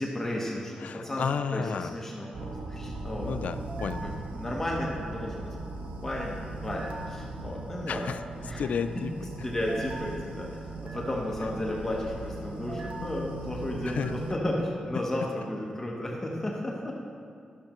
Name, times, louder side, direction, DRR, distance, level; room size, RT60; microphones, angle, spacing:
voice 1, 0.0-1.3 1.5-3.4 4.0-5.5 6.0-8.0 8.4-8.6 9.4-10.5 10.8-16.9, left 1 dB, 15° left, -3 dB, 0.9 m, -33 dB
voice 2, 0.8-2.0 2.9-4.1 7.9-8.2 8.6-9.1 13.9-14.1, left 6 dB, 70° left, 10 dB, 0.3 m, -32 dB
sound 1, 2.3-14.4, right 2 dB, 70° right, 0.7 m, -38 dB
12.5 x 6.3 x 3.0 m, 2.2 s
wide cardioid pair, 155°, 3 cm